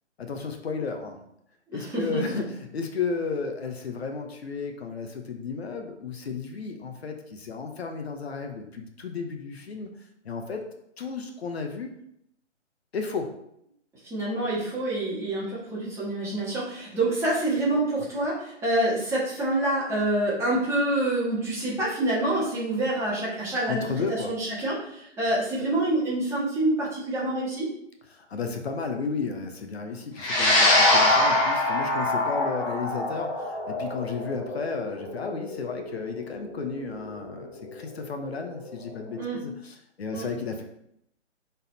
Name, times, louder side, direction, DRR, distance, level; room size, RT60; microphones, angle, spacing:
voice 1, 0.2-1.2 1.7-9.9 10.2-10.6 11.0-12.0 12.9-13.3 23.7-24.3 28.1-40.6, left 5 dB, 55° left, 5 dB, 1.0 m, -33 dB
voice 2, 1.7-2.2 14.1-27.6 39.2-39.4 40.1-40.2, right 1 dB, 5° right, -7 dB, 1.6 m, -27 dB
sound 1, 30.2-38.7, left 1 dB, 15° left, 1.0 m, -24 dB
6.3 x 4.0 x 4.1 m, 0.75 s
hypercardioid pair, 150°, 37 cm